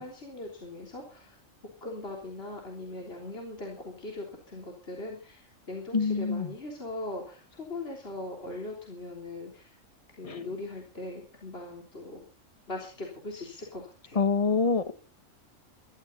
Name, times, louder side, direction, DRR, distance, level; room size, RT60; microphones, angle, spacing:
voice 1, 0.0-1.4 1.8-5.4 5.7-9.7 10.2-12.2 12.7-14.2, left 2 dB, 45° left, 3.8 m, -40 dB
voice 2, 5.9-6.5 10.2-10.5 14.1-14.9, left 4 dB, 30° left, 1.1 m, -26 dB
21.5 x 13.5 x 4.0 m
omnidirectional pair, 1.4 m